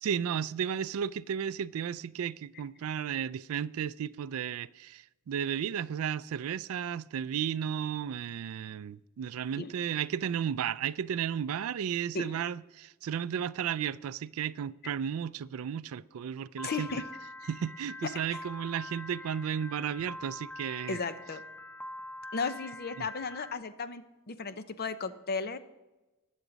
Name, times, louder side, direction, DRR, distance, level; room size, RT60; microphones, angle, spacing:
voice 1, 0.0-16.9 17.5-21.0 23.0-23.1, right 8 dB, 75° right, 0.3 m, -34 dB
voice 2, 12.1-12.5 16.6-17.0 18.0-18.1 20.9-21.4 22.3-25.6, left 4 dB, 45° left, 0.7 m, -35 dB
Piano, 16.6-23.5, left 1 dB, 5° left, 0.3 m, -44 dB
20.0 x 7.3 x 4.0 m
head